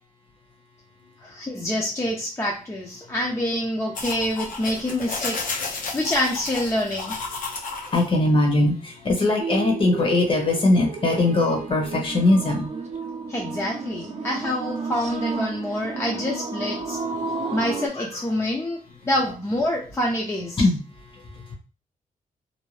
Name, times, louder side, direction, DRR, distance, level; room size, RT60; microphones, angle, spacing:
voice 1, 1.2-5.5 5.9-7.2 13.3-17.0 17.5-18.8 19.1-20.6, left 1 dB, 20° left, -1 dB, 0.5 m, -26 dB
sound 1, 4.0-8.1, left 4 dB, 65° left, 0.7 m, -32 dB
voice 2, 7.9-12.7 18.0-18.2 20.6-21.5, left 2 dB, 35° left, 2 dB, 0.9 m, -21 dB
sound 2, 9.4-17.9, right 4 dB, 50° right, 0.5 m, -32 dB
2.6 x 2.1 x 3.1 m, 0.35 s
wide cardioid pair, 125°, 15 cm